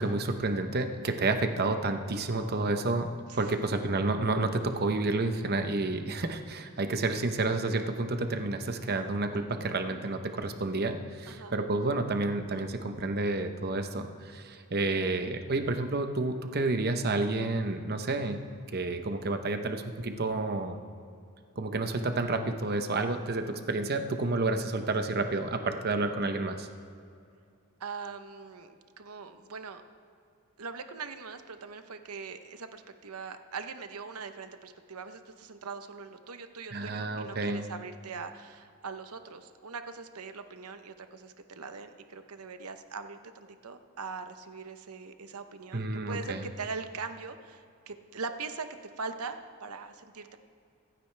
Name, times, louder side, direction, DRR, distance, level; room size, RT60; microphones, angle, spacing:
voice 1, 0.0-3.1 3.4-18.4 18.7-20.8 21.6-26.7 36.7-37.7 45.7-46.4, right 2 dB, 45° right, 6 dB, 0.9 m, -30 dB
voice 2, 27.8-29.8 30.6-48.7 49.0-50.4, right 4 dB, 85° right, 9 dB, 0.8 m, -41 dB
25.5 x 9.0 x 3.4 m, 2.4 s
head